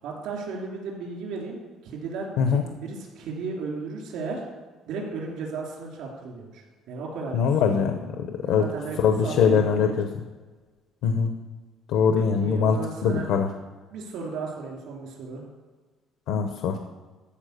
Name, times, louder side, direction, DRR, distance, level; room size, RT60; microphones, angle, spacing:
voice 1, 0.0-4.4 4.9-7.9 8.4-10.1 12.1-13.3 13.9-15.4, right 4 dB, 80° right, -1 dB, 3.2 m, -35 dB
voice 2, 7.3-8.6 9.0-10.1 11.0-11.3 11.9-13.5 16.3-16.8, left 6 dB, 80° left, 6 dB, 0.8 m, -22 dB
14.0 x 4.8 x 6.7 m, 1.3 s
cardioid pair, 150°, 0 cm